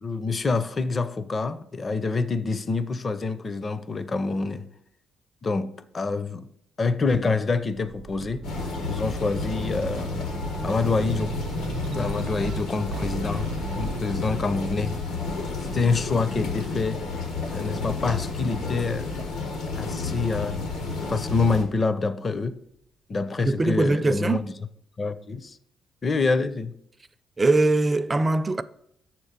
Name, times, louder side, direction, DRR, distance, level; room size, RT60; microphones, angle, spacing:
voice 1, 0.0-4.7 5.4-6.5 6.8-8.5 8.9-10.3 10.6-11.4 12.0-15.0 15.7-17.0 17.5-19.1 19.8-20.6 21.1-22.6 23.1-24.5 25.0-25.6 26.0-26.7, left 4 dB, 35° left, 0.5 m, -26 dB
sound 1, 7.6-18.1 18.6-19.8, right 6 dB, 80° right, 0.6 m, -38 dB
sound 2, 8.4-21.6, left 4 dB, 90° left, 1.5 m, -31 dB
voice 2, 23.4-24.5 27.4-28.6, right 2 dB, 25° right, 0.4 m, -22 dB
7.0 x 4.4 x 6.6 m
cardioid pair, 90°, 0 cm